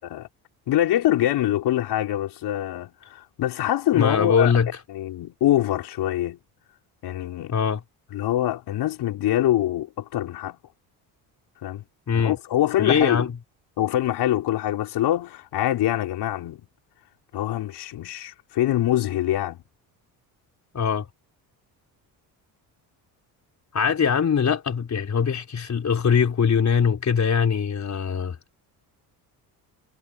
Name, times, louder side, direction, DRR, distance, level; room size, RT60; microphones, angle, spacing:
voice 1, 0.7-4.5 4.9-6.4 7.0-7.5 8.1-10.6 11.6-11.8 12.1-13.3 13.8-16.6 17.3-19.6, left 13 dB, 70° left, 4.3 m, -24 dB
voice 2, 3.9-4.7 7.5-7.8 12.1-12.4 12.8-13.3 20.7-21.1 23.7-28.4, left 6 dB, 40° left, 4.1 m, -22 dB
supercardioid pair, 80°, 41 cm